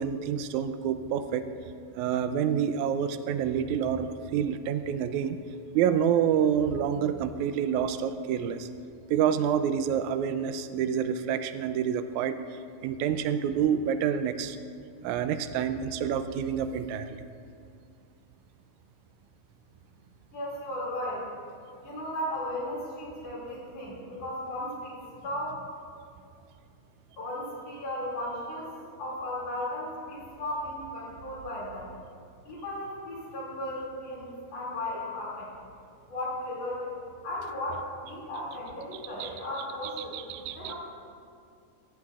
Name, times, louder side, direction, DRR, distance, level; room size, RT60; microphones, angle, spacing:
voice 1, 0.0-1.5 2.0-5.4 5.7-8.7 9.1-12.4 12.8-14.6 15.0-17.2 38.9-39.3 39.8-40.7, right 8 dB, 90° right, 10 dB, 2.0 m, -28 dB
voice 2, 20.3-21.3 21.8-25.6 27.2-28.7 29.0-32.0 32.4-35.5 36.1-36.9 37.2-40.7, left 1 dB, 60° left, -5 dB, 3.7 m, -35 dB
14.5 x 14.0 x 2.4 m, 2.4 s
omnidirectional pair, 3.3 m